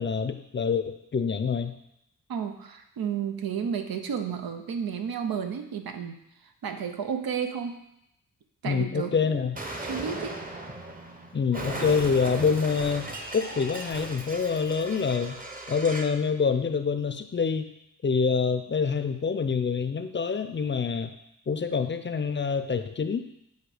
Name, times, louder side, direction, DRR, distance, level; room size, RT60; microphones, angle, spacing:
voice 1, 0.0-1.7 8.6-9.6 11.3-15.4 15.7-17.7 18.0-21.1 21.5-23.2, left 5 dB, 35° left, 9 dB, 0.5 m, -26 dB
voice 2, 2.3-6.2 6.6-7.8 8.6-9.5 9.8-10.4, right 7 dB, 90° right, 6 dB, 0.6 m, -32 dB
Explosion, 9.5-16.2, right 2 dB, 25° right, 0.8 m, -37 dB
8.0 x 2.7 x 4.9 m, 0.80 s
cardioid pair, 70°, 35 cm